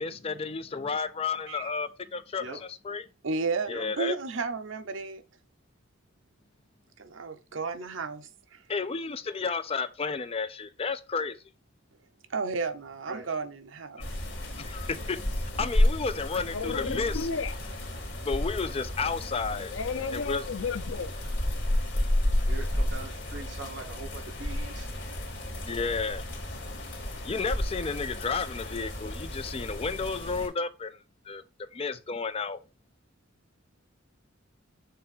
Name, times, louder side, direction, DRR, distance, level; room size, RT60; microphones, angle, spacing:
voice 1, 0.0-3.0 3.7-4.2 8.7-11.4 14.6-17.3 18.2-19.7 20.1-20.4 25.6-26.3 27.2-31.0 31.3-32.6, left 4 dB, 30° left, 0.5 m, -32 dB
voice 2, 3.2-5.2 7.0-8.6 12.3-14.1, right 4 dB, 80° right, 0.7 m, -33 dB
sound 1, 14.0-30.5, left 1 dB, 65° left, 2.2 m, -31 dB
voice 3, 16.5-17.5 19.7-21.1, left 5 dB, 90° left, 0.6 m, -33 dB
voice 4, 22.4-25.0, right 3 dB, 65° right, 1.2 m, -42 dB
6.8 x 2.6 x 5.4 m
head